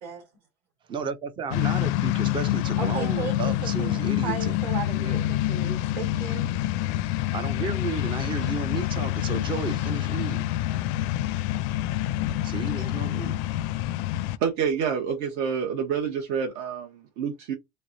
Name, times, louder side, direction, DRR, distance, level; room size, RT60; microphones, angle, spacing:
voice 1, 0.9-4.7 5.0-5.3 7.3-10.5 12.4-13.4, right 5 dB, 15° right, 0.4 m, -33 dB
sound 1, 1.5-14.4, left 14 dB, 70° left, 0.5 m, -27 dB
voice 2, 2.8-3.5 3.8-6.5, right 6 dB, 50° right, 1.5 m, -35 dB
voice 3, 14.4-17.5, right 7 dB, 65° right, 1.1 m, -28 dB
3.2 x 3.2 x 2.6 m
cardioid pair, 165°, 34 cm